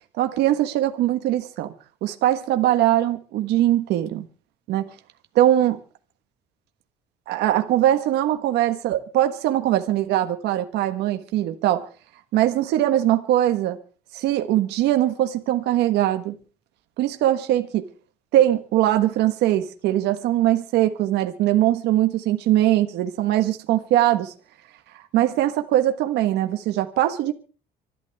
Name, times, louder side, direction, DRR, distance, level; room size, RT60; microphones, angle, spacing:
voice 1, 0.2-1.7 2.0-4.2 4.7-4.9 5.3-5.8 7.3-11.9 12.3-13.8 14.1-16.3 17.0-17.8 18.3-24.3 25.1-27.3, right 13 dB, 85° right, 1.5 m, -21 dB
25.5 x 12.0 x 3.6 m
cardioid pair, 110°, 17 cm